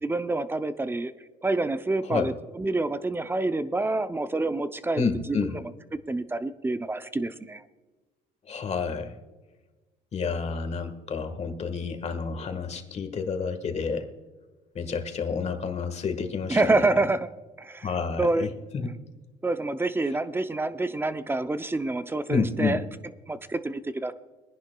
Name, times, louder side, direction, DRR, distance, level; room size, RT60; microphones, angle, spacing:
voice 1, 0.0-1.1 1.4-5.0 5.3-5.5 6.1-7.6 16.5-17.3 17.6-17.9 18.2-18.5 19.4-22.8 23.3-24.1, right 2 dB, 15° right, 11 dB, 0.5 m, -27 dB
voice 2, 5.0-5.6 8.5-9.1 10.1-14.1 14.7-17.0 17.8-18.9 22.3-22.9, left 5 dB, 40° left, 7 dB, 1.5 m, -30 dB
24.0 x 10.5 x 2.3 m, 1.2 s
cardioid pair, 110°, 17 cm